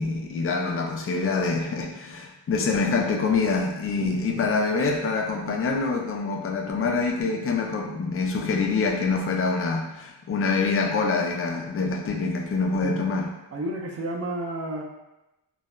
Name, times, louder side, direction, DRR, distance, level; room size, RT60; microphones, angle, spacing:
voice 1, 0.0-13.3, left 4 dB, 30° left, 2 dB, 0.4 m, -25 dB
voice 2, 13.5-14.8, right 1 dB, 35° right, 0 dB, 0.5 m, -32 dB
3.0 x 2.0 x 2.2 m, 0.95 s
cardioid pair, 80°, 46 cm